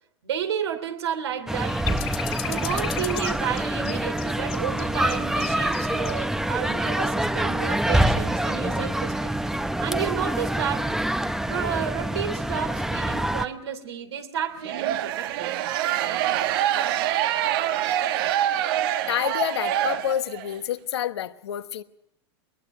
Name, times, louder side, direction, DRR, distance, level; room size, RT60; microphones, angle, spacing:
voice 1, 0.2-2.0 2.4-9.3 9.8-10.9 11.4-15.5, right 8 dB, 80° right, 3.1 m, -31 dB
sound 1, 1.5-13.5, right 1 dB, 5° right, 0.8 m, -26 dB
sound 2, 1.7-6.3 6.6-6.7, left 15 dB, 60° left, 2.8 m, -35 dB
sound 3, 14.6-20.5, right 11 dB, 60° right, 1.2 m, -25 dB
voice 2, 19.1-21.8, left 10 dB, 80° left, 1.2 m, -28 dB
23.0 x 21.0 x 6.1 m
hypercardioid pair, 110°, 14 cm